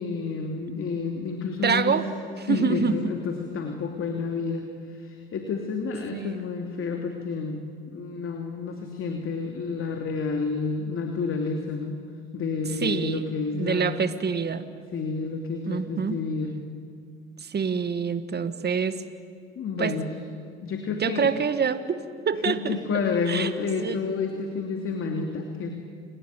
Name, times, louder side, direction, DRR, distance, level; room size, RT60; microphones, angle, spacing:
voice 1, 0.0-2.0 2.5-7.6 7.9-12.0 12.3-14.0 14.9-16.5 19.6-20.1 20.6-21.3 22.5-25.7, left 5 dB, 45° left, 3 dB, 2.8 m, -30 dB
voice 2, 1.6-2.1 2.4-3.0 6.1-6.4 12.7-13.3 13.5-14.6 15.7-16.2 17.4-19.0 19.8-20.0 21.0-22.8 23.3-23.5 23.8-24.0, right 6 dB, 35° right, 12 dB, 1.8 m, -26 dB
29.0 x 19.5 x 9.2 m, 2.3 s
hypercardioid pair, 65°, 30 cm